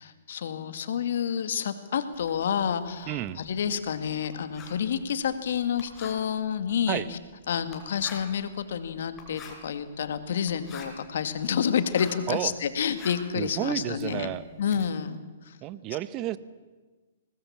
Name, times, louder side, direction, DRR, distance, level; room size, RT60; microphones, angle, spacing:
voice 1, 0.0-7.2 7.5-14.3 14.6-15.6, left 8 dB, 65° left, 10 dB, 1.9 m, -29 dB
Writing, 2.1-12.3 12.7-14.9, left 5 dB, 25° left, 4.8 m, -48 dB
voice 2, 3.1-3.4 6.9-7.1 12.3-12.5 13.3-14.5 15.6-16.4, right 14 dB, 35° right, 16 dB, 0.9 m, -31 dB
23.5 x 19.5 x 7.4 m, 1.3 s
hypercardioid pair, 120°, 0 cm